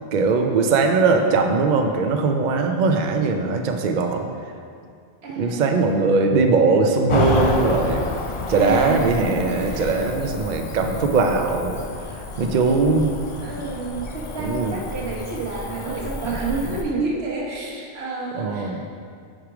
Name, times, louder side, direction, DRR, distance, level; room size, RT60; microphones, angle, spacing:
voice 1, 0.1-4.3 5.4-8.0 8.5-11.8 12.4-13.1 14.4-14.7 18.3-18.8, right 4 dB, 55° right, 4 dB, 0.6 m, -20 dB
voice 2, 5.2-5.9 8.5-10.0 13.4-18.8, right 3 dB, 80° right, -2 dB, 1.3 m, -29 dB
Cricket / Motor vehicle (road), 7.1-16.8, left 3 dB, 40° left, 0.4 m, -29 dB
6.4 x 4.9 x 4.9 m, 2.2 s
omnidirectional pair, 1.1 m